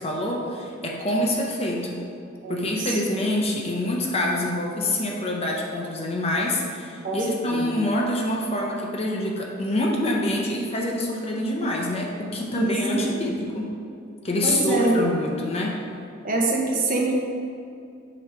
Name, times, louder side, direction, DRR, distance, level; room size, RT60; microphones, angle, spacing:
voice 1, 0.0-2.0 2.5-13.7 14.2-15.8, left 1 dB, 30° left, 0 dB, 0.8 m, -26 dB
voice 2, 2.4-3.0 7.0-7.2 7.5-7.8 12.5-13.1 14.4-15.0 16.2-17.2, right 2 dB, 45° right, -1 dB, 1.0 m, -25 dB
8.3 x 3.2 x 5.9 m, 2.5 s
head